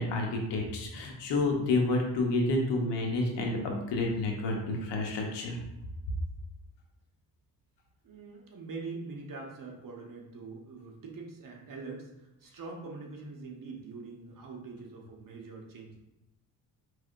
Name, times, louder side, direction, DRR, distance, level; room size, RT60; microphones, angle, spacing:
voice 1, 0.0-5.6, left 2 dB, 85° left, 0 dB, 1.0 m, -29 dB
voice 2, 8.0-16.0, right 4 dB, 50° right, 0 dB, 1.1 m, -43 dB
4.6 x 3.3 x 2.6 m, 0.93 s
cardioid pair, 85°, 41 cm